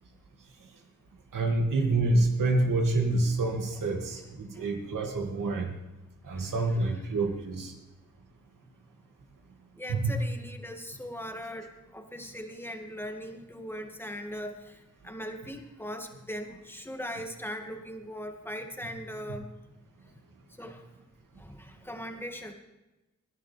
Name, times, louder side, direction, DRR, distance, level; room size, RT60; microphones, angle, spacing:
voice 1, 1.3-5.7 6.3-7.7 9.9-10.1, right 2 dB, 85° right, 2 dB, 2.4 m, -27 dB
voice 2, 6.3-7.2 9.8-11.7 11.9-19.5 20.6-20.9 21.4-22.5, equal, 5° left, 4 dB, 2.3 m, -40 dB
21.5 x 11.0 x 3.5 m, 1.0 s
cardioid pair, 50°, 32 cm